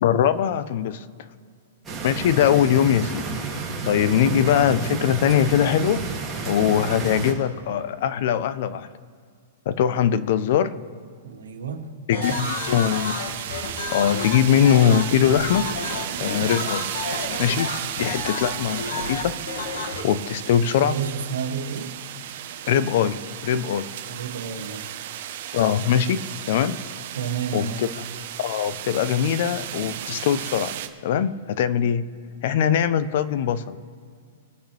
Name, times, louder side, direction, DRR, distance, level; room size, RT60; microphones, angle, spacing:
voice 1, 0.0-1.1 2.0-6.1 6.4-8.9 9.7-10.8 12.1-13.1 13.9-15.8 16.2-16.9 17.4-17.7 18.0-19.4 20.0-21.0 22.7-23.9 25.5-26.8 27.5-28.0 28.4-30.7 31.0-32.0 32.4-33.8, left 9 dB, 55° left, 13 dB, 0.8 m, -22 dB
sound 1, 1.8-7.3, right 4 dB, 15° right, 2.7 m, -31 dB
voice 2, 11.2-11.9 12.2-12.9 20.8-22.0 24.1-25.0 27.2-27.8, right 6 dB, 90° right, 4 dB, 1.9 m, -31 dB
sound 2, 12.1-20.0, left 3 dB, 75° left, 2.2 m, -31 dB
sound 3, 12.2-30.9, right 11 dB, 55° right, 1.1 m, -34 dB
23.0 x 9.1 x 3.5 m, 2.1 s
hypercardioid pair, 145°, 0 cm